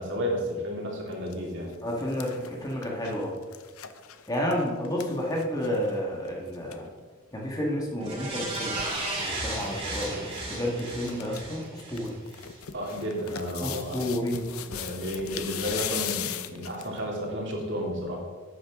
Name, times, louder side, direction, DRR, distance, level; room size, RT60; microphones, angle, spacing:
voice 1, 0.0-1.7 12.7-14.0 14.6-18.2, equal, 55° right, -2 dB, 2.6 m, -32 dB
sound 1, 1.1-1.3 1.7-6.0 6.3-6.4 6.5-6.8 8.1-9.0 9.6-10.1 10.3-10.4 10.8-11.4 11.8-17.0 17.5-17.6, left 10 dB, 75° left, 0.7 m, -38 dB
voice 2, 1.8-3.3 4.3-6.9 7.3-8.8 9.2-12.2 13.6-14.4, equal, 15° left, -2 dB, 1.5 m, -30 dB
sound 2, 8.0-12.5 12.9-13.0, right 2 dB, 25° right, 2.6 m, -35 dB
11.5 x 8.9 x 3.6 m, 1.5 s
head